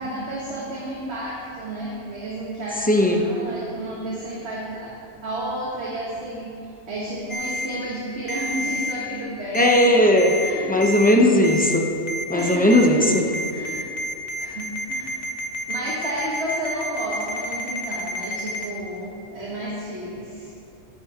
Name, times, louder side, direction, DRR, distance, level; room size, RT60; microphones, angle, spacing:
voice 1, 0.0-6.5 6.9-10.0 10.3-10.8 12.3-12.9 13.5-13.9 14.4-15.4 15.7-20.5, right 1 dB, 55° right, -6 dB, 1.6 m, -31 dB
voice 2, 2.9-3.3 9.5-10.3 10.7-11.8 12.3-13.2, left 1 dB, 10° left, 0 dB, 0.7 m, -17 dB
Ringtone, 7.3-7.7 8.3-8.9 9.5-9.9 10.2-10.5 10.8-11.1 11.4-11.8 12.1-18.7, equal, 35° left, 0.9 m, -29 dB
14.0 x 9.6 x 3.0 m, 2.6 s
omnidirectional pair, 1.3 m